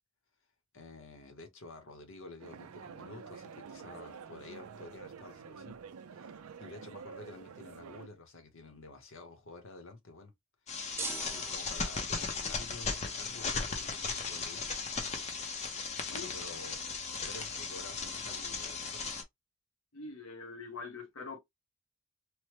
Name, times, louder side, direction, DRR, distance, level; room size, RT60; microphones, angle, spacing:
voice 1, 0.7-5.8 6.1-10.3 11.3-14.7 16.1-16.8 17.3-19.0, left 3 dB, 60° left, 0.9 m, -50 dB
sound 1, 2.4-8.1, right 6 dB, 80° right, 0.4 m, -48 dB
sound 2, 10.7-19.2, left 4 dB, 30° left, 0.6 m, -37 dB
sound 3, 11.0-12.3, right 3 dB, 10° right, 0.7 m, -41 dB
voice 2, 19.9-21.4, left 4 dB, 80° left, 1.1 m, -43 dB
3.2 x 2.1 x 2.9 m
head